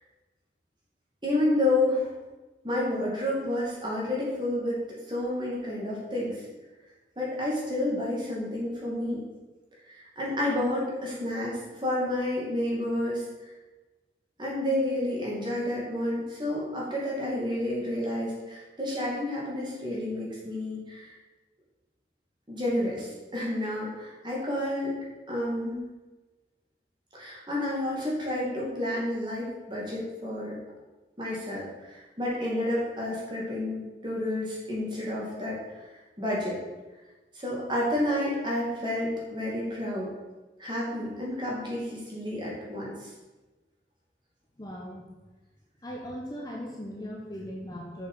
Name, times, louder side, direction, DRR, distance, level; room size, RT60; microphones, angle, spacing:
voice 1, 1.2-2.2 2.6-6.5 7.2-9.2 9.9-13.2 14.4-21.1 22.5-25.0 25.3-25.8 27.1-30.6 31.2-35.6 36.2-36.6 37.3-40.1 40.6-43.1, left 1 dB, 25° right, -5 dB, 2.3 m, -30 dB
voice 2, 44.6-45.1 45.8-48.1, equal, 20° left, -1 dB, 0.9 m, -38 dB
7.3 x 6.4 x 5.6 m, 1.2 s
head